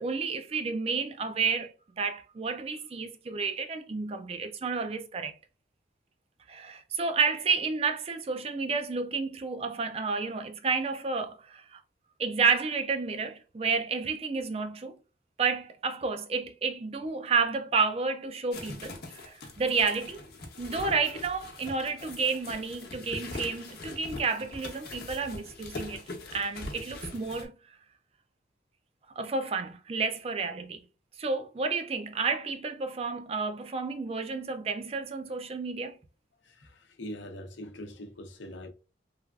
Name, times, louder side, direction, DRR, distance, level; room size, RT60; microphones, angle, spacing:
voice 1, 0.0-5.4 6.5-11.8 12.2-15.0 15.4-20.2 20.6-26.0 26.3-27.6 29.2-30.8 31.2-36.0, right 4 dB, 35° right, 0.4 m, -31 dB
sound 1, 18.5-27.4, left 2 dB, 55° left, 0.8 m, -42 dB
voice 2, 36.4-38.7, left 1 dB, 85° left, 0.7 m, -42 dB
3.2 x 2.4 x 2.3 m
head